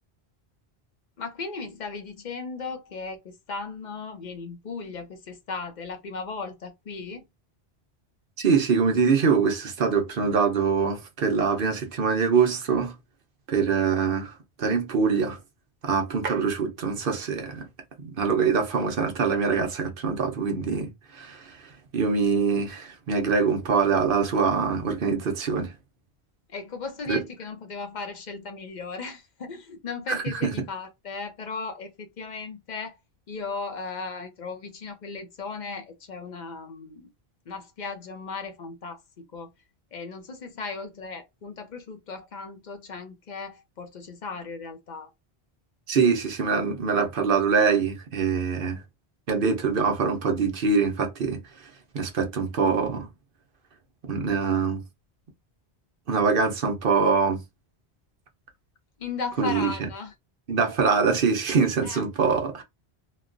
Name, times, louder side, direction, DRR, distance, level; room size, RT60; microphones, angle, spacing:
voice 1, 1.2-7.2 26.5-33.0 33.3-37.1 37.5-39.5 39.9-45.1 59.0-60.1 61.8-62.0, left 4 dB, 50° left, 0.8 m, -36 dB
voice 2, 8.4-12.9 13.5-15.4 15.8-17.7 18.0-21.6 21.9-25.7 27.1-27.2 30.1-30.5 45.9-48.8 49.3-51.4 51.9-53.1 54.0-54.8 56.1-57.4 59.4-59.9 60.5-62.6, right 5 dB, 60° right, 0.9 m, -24 dB
3.0 x 2.2 x 2.5 m
omnidirectional pair, 1.1 m